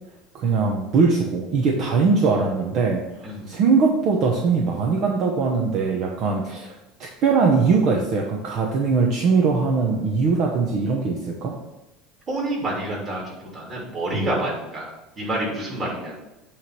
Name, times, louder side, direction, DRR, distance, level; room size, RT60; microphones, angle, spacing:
voice 1, 0.3-3.0 3.5-6.8 7.2-11.6 14.1-14.3, right 4 dB, 50° right, 0 dB, 1.0 m, -21 dB
voice 2, 3.2-3.6 12.3-16.2, right 1 dB, 25° right, -4 dB, 3.0 m, -28 dB
8.9 x 3.3 x 6.0 m, 1.0 s
cardioid pair, 140°, 0 cm